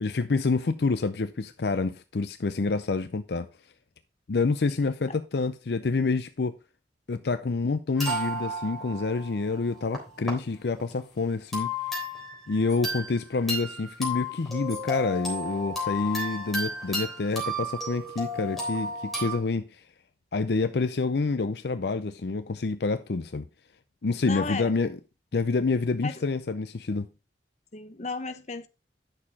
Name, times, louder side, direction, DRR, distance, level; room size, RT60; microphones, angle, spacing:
voice 1, 0.0-3.5 4.3-6.6 7.1-11.7 12.5-19.6 20.3-23.4 24.0-24.9 25.3-27.1, left 3 dB, 70° left, 0.5 m, -27 dB
sound 1, 8.0-10.3 10.8-11.0 11.5-13.2 13.5-19.4, left 1 dB, ahead, 3.5 m, -33 dB
voice 2, 24.2-24.7 26.0-26.2 27.7-28.7, left 4 dB, 40° left, 0.9 m, -34 dB
9.9 x 6.5 x 4.1 m
head